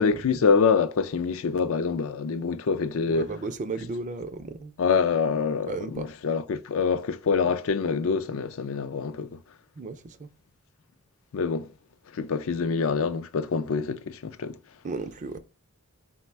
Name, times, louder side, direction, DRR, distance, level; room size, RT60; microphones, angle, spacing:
voice 1, 0.0-3.3 4.8-9.4 11.3-11.7 12.1-14.6, left 5 dB, 65° left, 0.4 m, -25 dB
voice 2, 3.1-4.7 5.7-6.1 9.8-10.3 14.8-15.4, right 3 dB, 35° right, 0.4 m, -34 dB
4.1 x 2.1 x 4.3 m
head